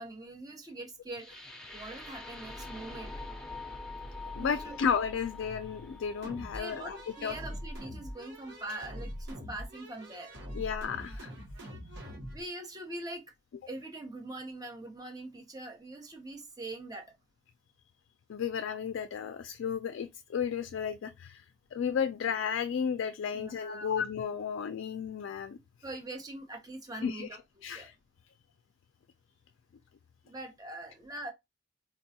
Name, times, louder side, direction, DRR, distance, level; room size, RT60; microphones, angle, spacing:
voice 1, 0.0-3.1 4.4-4.8 6.5-10.3 12.3-13.2 13.7-17.1 23.3-23.9 25.8-27.4 27.7-27.9 30.2-31.3, right 2 dB, 20° right, 0.8 m, -43 dB
sound 1, 1.1-9.2, left 2 dB, 5° left, 0.9 m, -45 dB
voice 2, 4.3-7.0 7.2-7.3 10.5-11.3 18.3-21.4 21.7-25.6 27.0-27.3 27.6-27.9, left 7 dB, 75° left, 0.3 m, -33 dB
sound 2, 6.2-12.4, equal, 65° right, 1.2 m, -43 dB
4.0 x 2.2 x 2.7 m
head